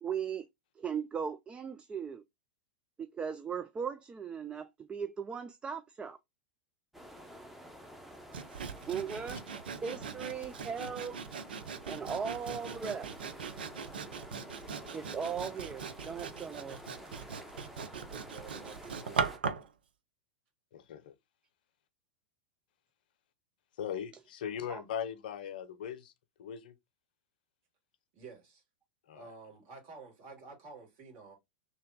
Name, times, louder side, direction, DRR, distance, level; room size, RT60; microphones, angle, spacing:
voice 1, 0.0-0.5 0.8-2.2 3.0-6.2 8.9-9.4 9.8-11.2 11.8-13.1 14.9-16.8 24.7-24.8, right 6 dB, 20° right, 0.4 m, -38 dB
sound 1, 6.9-19.4, equal, 5° right, 0.8 m, -50 dB
Sawing, 8.3-19.7, right 6 dB, 75° right, 0.6 m, -40 dB
voice 2, 18.1-19.3 28.1-28.6 29.1-31.3, right 4 dB, 50° right, 2.3 m, -50 dB
voice 3, 20.7-21.1 23.8-26.1 26.4-26.7 29.1-29.3, left 9 dB, 60° left, 0.7 m, -39 dB
3.3 x 2.9 x 3.6 m
hypercardioid pair, 95°, 5 cm